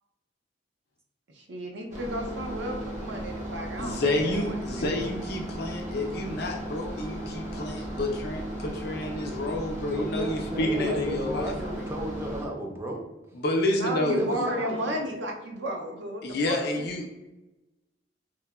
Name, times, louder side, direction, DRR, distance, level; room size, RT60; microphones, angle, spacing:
voice 1, 1.3-4.0 4.2-5.1 13.8-16.8, equal, 70° right, 2 dB, 0.5 m, -33 dB
sound 1, 1.9-12.5, right 1 dB, 40° right, 0.8 m, -36 dB
voice 2, 3.8-11.8 13.3-14.4 16.2-17.1, left 1 dB, 60° left, 1 dB, 0.5 m, -29 dB
voice 3, 9.9-13.0 14.1-15.0, right 1 dB, 15° right, 0 dB, 0.5 m, -34 dB
3.0 x 2.1 x 2.3 m, 0.99 s
head